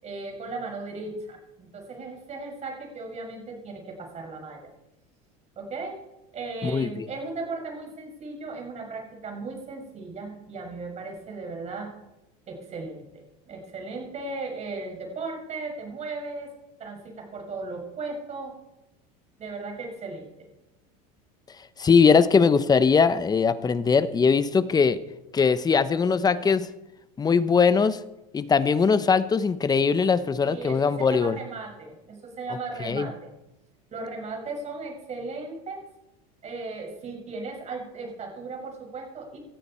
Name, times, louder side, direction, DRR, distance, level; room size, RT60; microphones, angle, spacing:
voice 1, 0.0-4.7 5.6-6.0 6.3-11.9 12.5-16.5 16.8-18.5 19.4-20.5 30.4-33.3 33.9-35.8 36.4-39.4, right 3 dB, 35° right, 2 dB, 6.3 m, -36 dB
voice 2, 6.6-7.1 21.8-25.0 25.3-26.7 27.2-28.0 28.3-31.4 32.8-33.1, left 5 dB, 20° left, 14 dB, 0.9 m, -21 dB
18.0 x 13.5 x 4.4 m, 0.93 s
supercardioid pair, 120°, 20 cm